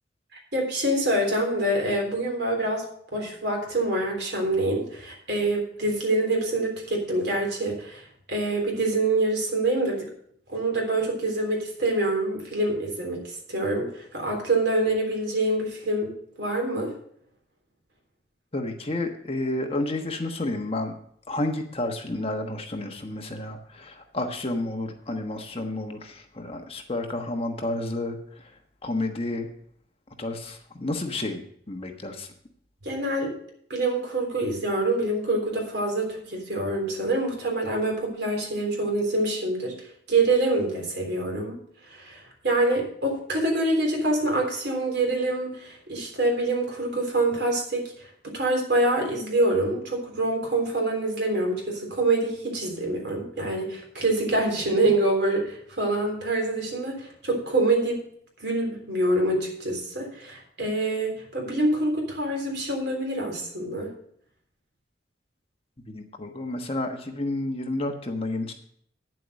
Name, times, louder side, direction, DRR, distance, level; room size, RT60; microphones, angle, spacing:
voice 1, 0.5-2.8 3.1-8.0 8.3-10.1 10.5-16.1 16.4-16.9 32.8-33.3 33.7-39.7 40.1-41.6 41.9-47.9 48.3-58.0 58.4-63.9, right 2 dB, 65° right, 1 dB, 3.5 m, -26 dB
voice 2, 18.5-20.9 21.3-28.5 28.8-29.5 30.2-31.4 31.7-32.3 65.9-68.5, left 2 dB, 30° left, 4 dB, 1.2 m, -30 dB
9.5 x 7.6 x 6.4 m, 0.66 s
head